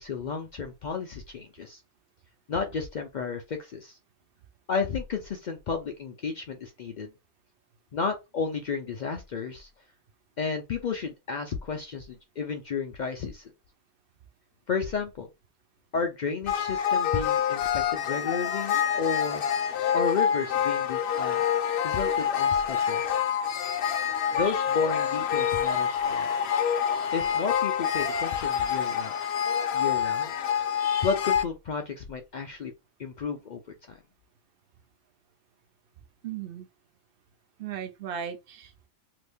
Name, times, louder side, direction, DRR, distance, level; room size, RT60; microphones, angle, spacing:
voice 1, 0.0-1.8 2.5-4.0 4.7-7.1 7.9-9.7 10.4-13.5 14.7-15.3 15.9-19.4 19.9-21.4 21.8-23.0 24.3-26.3 27.1-29.1 29.7-30.3 31.0-32.7 33.0-33.6 33.9-34.0, left 5 dB, 80° left, 0.4 m, -32 dB
sound 1, 16.5-31.4, left 8 dB, 65° left, 0.8 m, -27 dB
voice 2, 36.2-36.7 37.6-38.9, right 8 dB, 55° right, 0.7 m, -36 dB
2.9 x 2.6 x 3.4 m
omnidirectional pair, 1.3 m